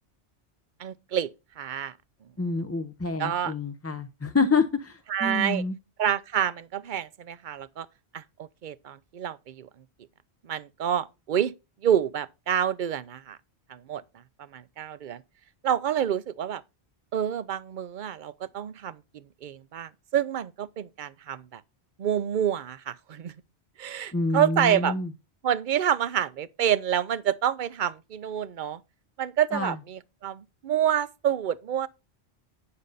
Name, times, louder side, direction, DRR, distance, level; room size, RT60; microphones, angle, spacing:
voice 1, 0.8-1.3 1.6-1.9 3.2-3.5 5.1-5.6 6.0-7.9 8.1-9.7 10.4-11.5 11.8-13.4 13.7-14.0 14.4-15.2 15.6-16.6 17.1-21.6 22.0-23.3 23.8-25.0 25.4-28.8 29.2-31.9, right 9 dB, 55° right, 0.7 m, -28 dB
voice 2, 2.4-5.8 24.1-25.1 29.5-29.7, left 3 dB, 15° left, 0.5 m, -27 dB
9.7 x 6.5 x 4.0 m
omnidirectional pair, 1.1 m